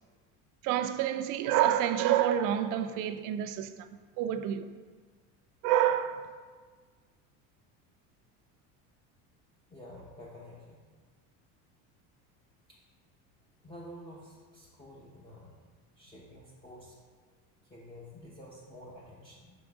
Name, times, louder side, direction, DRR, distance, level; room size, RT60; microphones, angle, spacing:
voice 1, 0.6-3.9 4.2-4.7 5.6-6.3, right 11 dB, 55° right, 0.4 m, -28 dB
voice 2, 9.7-10.8 12.7-12.8 13.6-15.5 16.0-17.0 17.7-19.5, left 1 dB, 15° left, 0.7 m, -49 dB
5.4 x 3.7 x 4.8 m
cardioid pair, 130°, 37 cm